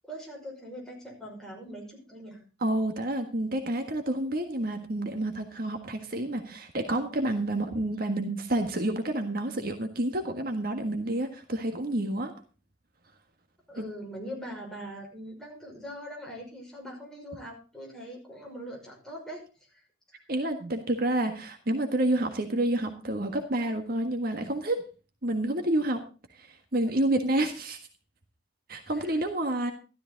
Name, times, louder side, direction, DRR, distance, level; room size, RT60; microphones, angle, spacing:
voice 1, 0.0-2.4 13.7-19.4 19.7-19.8 20.1-20.2 28.9-29.2, equal, 5° left, -2 dB, 5.9 m, -42 dB
voice 2, 2.6-12.3 13.8-13.9 20.3-24.8 25.2-26.0 26.4-27.8 28.7-29.7, right 1 dB, 55° right, 5 dB, 1.6 m, -29 dB
13.5 x 13.0 x 4.0 m, 0.34 s
head